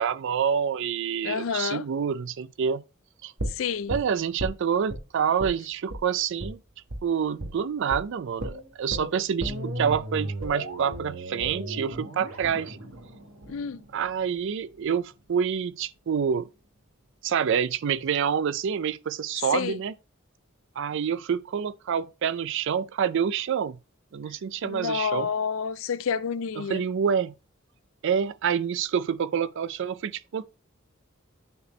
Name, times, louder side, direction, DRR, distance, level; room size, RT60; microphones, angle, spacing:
voice 1, 0.0-2.8 3.2-3.3 3.9-6.6 7.0-12.8 13.9-16.5 17.2-19.9 20.8-23.8 24.1-25.3 26.6-27.3 28.0-30.5, right 7 dB, 60° right, 0.4 m, -27 dB
voice 2, 1.2-1.8 3.5-3.9 13.5-13.8 19.5-19.8 24.6-26.8, left 6 dB, 65° left, 0.4 m, -29 dB
sound 1, 3.4-5.0 5.4-5.6 5.9-6.0 6.4-6.5 6.9-7.0 7.4-7.6 7.9-8.0 8.4-14.4 14.7-14.8, right 1 dB, 90° right, 1.4 m, -35 dB
9.6 x 4.2 x 3.1 m
head